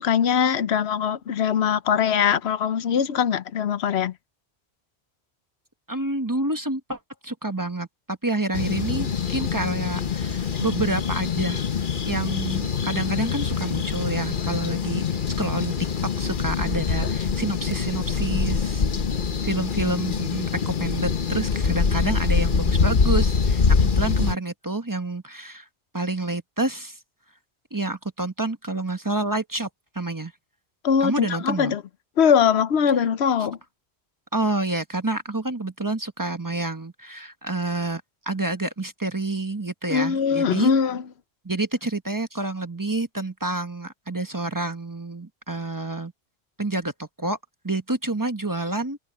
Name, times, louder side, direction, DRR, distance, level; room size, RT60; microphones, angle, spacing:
voice 1, 0.0-4.1 30.8-31.8 32.2-33.6 39.9-41.0, left 7 dB, 85° left, 1.0 m, -21 dB
voice 2, 5.9-11.6 12.0-15.7 16.0-18.9 19.4-25.7 25.9-27.0 27.7-29.7 29.9-30.3 31.0-31.8 34.3-38.0 38.3-40.7 41.4-46.1 46.6-47.4 47.6-49.0, right 2 dB, 20° right, 1.1 m, -28 dB
sound 1, 8.5-24.3, left 5 dB, 55° left, 1.1 m, -24 dB
omnidirectional pair, 1.1 m